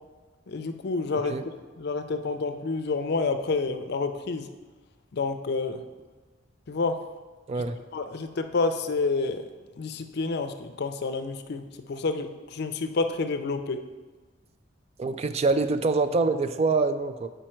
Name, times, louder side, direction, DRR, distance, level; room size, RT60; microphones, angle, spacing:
voice 1, 0.5-1.4 1.8-4.5 5.1-5.8 6.7-7.0 7.9-9.4 9.8-11.6 11.9-13.8, left 3 dB, 60° left, 8 dB, 0.5 m, -29 dB
voice 2, 15.0-17.3, right 3 dB, 35° right, 10 dB, 0.3 m, -25 dB
7.4 x 5.1 x 4.4 m, 1.3 s
head